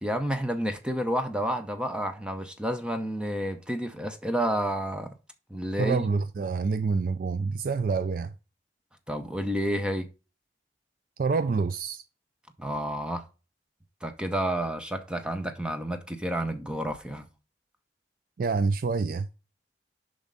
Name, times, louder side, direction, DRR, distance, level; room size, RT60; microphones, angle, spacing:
voice 1, 0.0-5.1 5.5-6.1 9.1-10.1 12.6-13.2 14.0-17.3, equal, 5° right, 0.7 m, -30 dB
voice 2, 5.8-8.3 11.2-12.0 18.4-19.3, right 4 dB, 50° right, 0.3 m, -27 dB
6.9 x 5.2 x 4.0 m
head